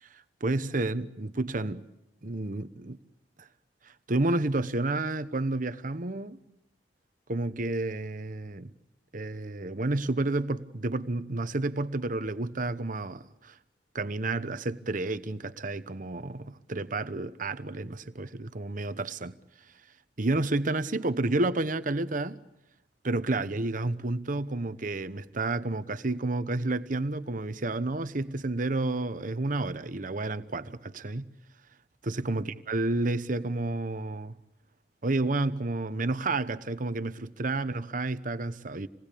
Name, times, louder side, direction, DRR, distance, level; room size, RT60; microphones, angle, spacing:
voice 1, 0.4-1.8 2.2-3.0 3.4-3.5 4.1-6.4 7.3-8.7 9.1-13.5 13.9-19.4 20.2-22.4 23.0-31.2 32.0-34.4 35.0-38.9, right 2 dB, 50° right, 1.0 m, -30 dB
27.5 x 19.5 x 8.5 m
head